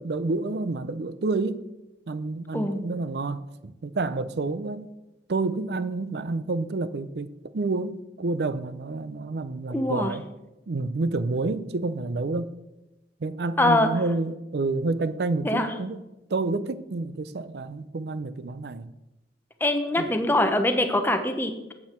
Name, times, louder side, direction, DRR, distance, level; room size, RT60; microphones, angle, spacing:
voice 1, 0.0-1.7 2.1-4.9 5.3-10.2 10.7-12.5 13.2-16.0 16.3-18.9 20.0-20.4, right 3 dB, 65° right, 0.5 m, -29 dB
voice 2, 9.7-10.1 13.6-13.9 15.4-15.7 19.6-21.7, left 1 dB, 10° left, 0.8 m, -23 dB
8.5 x 8.4 x 4.4 m
head